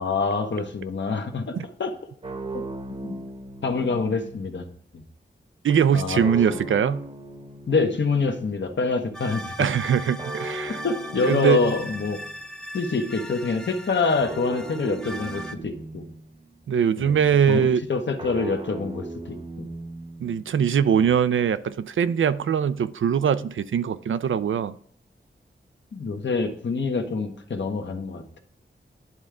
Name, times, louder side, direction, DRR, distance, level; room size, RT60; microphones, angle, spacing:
voice 1, 0.0-1.9 3.0-3.1 3.6-4.7 4.9-5.0 5.9-6.6 7.7-9.7 10.8-12.2 12.7-16.1 17.0-19.7 20.9-21.1 25.9-28.4, left 4 dB, 70° left, 5 dB, 1.0 m, -26 dB
sound 1, 2.2-4.6 6.2-8.6 10.2-12.4 14.2-16.5 18.2-20.5, right 2 dB, 30° right, 0.8 m, -38 dB
voice 2, 5.6-7.1 9.6-10.8 11.2-11.6 16.7-17.8 20.2-24.7, right 8 dB, 90° right, 14 dB, 0.4 m, -22 dB
sound 2, 9.1-15.6, equal, 5° left, 0.5 m, -38 dB
10.5 x 3.7 x 3.4 m, 0.64 s
wide cardioid pair, 100°, 20 cm